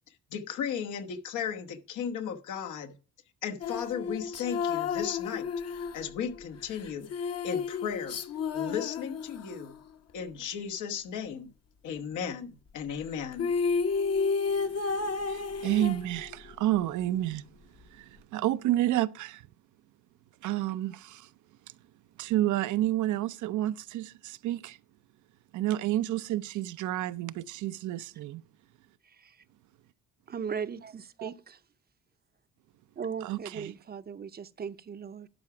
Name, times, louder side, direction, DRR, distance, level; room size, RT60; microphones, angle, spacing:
voice 1, 0.3-3.0 3.4-5.5 5.9-7.1 7.4-8.2 8.5-9.8 10.1-11.5 11.8-13.5, left 7 dB, 80° left, 1.1 m, -35 dB
sound 1, 3.6-9.8 13.0-13.1 13.3-16.5, left 5 dB, 55° left, 1.0 m, -32 dB
voice 2, 15.2-17.5 17.8-19.5 20.4-21.3 22.2-24.8 25.5-28.4 31.2-31.3 33.2-33.7, right 14 dB, 75° right, 0.5 m, -30 dB
voice 3, 29.0-29.4 30.3-31.6 33.0-35.3, right 6 dB, 30° right, 0.6 m, -38 dB
12.0 x 4.8 x 5.9 m
cardioid pair, 90°, 30 cm